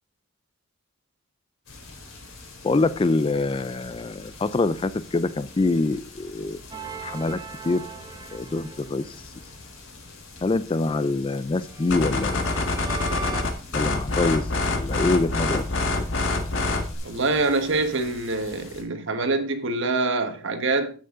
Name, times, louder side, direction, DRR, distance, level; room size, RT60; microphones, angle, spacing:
sound 1, 1.7-18.8, left 3 dB, 80° left, 3.4 m, -45 dB
voice 1, 2.6-6.6 7.0-7.8 8.3-9.2 10.4-12.8 13.7-15.6, left 3 dB, 25° left, 0.3 m, -25 dB
sound 2, 6.7-9.4 11.7-13.4, right 4 dB, 20° right, 0.6 m, -38 dB
sound 3, 11.9-16.9, left 2 dB, 60° left, 1.6 m, -26 dB
voice 2, 17.0-20.9, right 3 dB, 60° right, 1.3 m, -25 dB
10.5 x 7.9 x 3.8 m
head